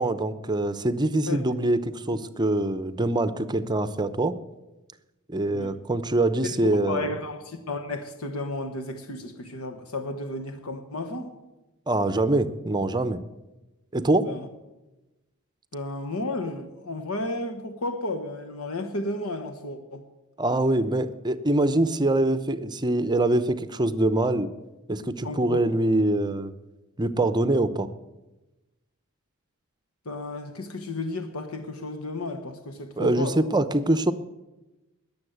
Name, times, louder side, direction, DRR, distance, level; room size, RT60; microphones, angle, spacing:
voice 1, 0.0-4.3 5.3-7.1 11.9-13.2 13.9-14.3 20.4-24.5 24.9-26.5 27.0-27.9 33.0-34.1, right 2 dB, 20° right, 0.6 m, -24 dB
voice 2, 6.4-11.3 14.2-14.5 15.7-20.1 25.2-25.7 30.0-33.4, left 2 dB, 80° left, 1.2 m, -33 dB
20.0 x 7.1 x 8.0 m
head